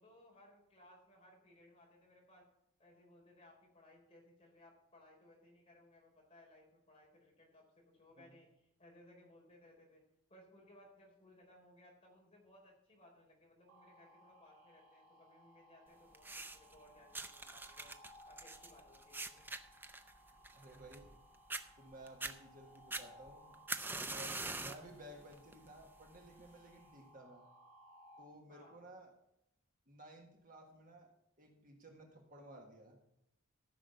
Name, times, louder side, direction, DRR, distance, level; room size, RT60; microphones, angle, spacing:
voice 1, 0.0-2.5 2.8-10.0 10.3-17.9 18.3-19.5 28.5-28.8, left 1 dB, 25° left, -2 dB, 4.1 m, -63 dB
sound 1, 13.7-28.2, equal, 60° right, 4.7 m, -63 dB
sound 2, 16.1-16.7 17.1-21.2 21.5-21.6 22.1-22.3 22.9-24.9 25.3-25.7 26.5-26.6, right 3 dB, 10° right, 0.5 m, -43 dB
voice 2, 20.5-21.1 21.8-23.6 23.9-27.4 28.2-29.1 29.9-31.1 31.4-33.0, right 1 dB, 35° right, 1 dB, 1.6 m, -56 dB
14.0 x 6.2 x 6.9 m, 0.81 s
head